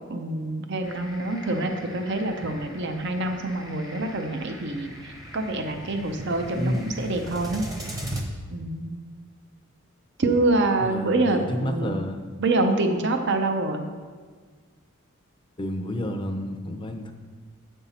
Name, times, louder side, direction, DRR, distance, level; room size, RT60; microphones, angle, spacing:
voice 1, 0.1-7.6 8.5-9.0 10.2-12.0 12.4-13.9, right 2 dB, 55° right, 6 dB, 0.6 m, -26 dB
sound 1, 0.8-8.2, right 1 dB, 15° right, 0.9 m, -39 dB
voice 2, 6.6-7.2 10.8-12.4 15.6-17.1, equal, 25° left, 5 dB, 0.5 m, -30 dB
7.9 x 5.4 x 4.2 m, 1.5 s
head